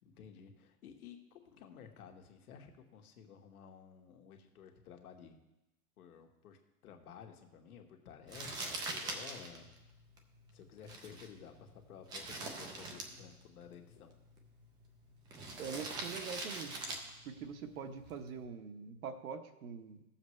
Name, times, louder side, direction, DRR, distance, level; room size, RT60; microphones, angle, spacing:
voice 1, 0.0-5.3 6.0-9.7 10.5-14.1, left 7 dB, 70° left, 4 dB, 1.6 m, -54 dB
Crumpling crinkling, 8.3-18.4, right 2 dB, 10° right, 0.4 m, -45 dB
voice 2, 15.6-16.7 17.2-20.0, right 6 dB, 70° right, 7 dB, 1.1 m, -44 dB
15.0 x 7.2 x 3.2 m, 0.97 s
hypercardioid pair, 145°, 45 cm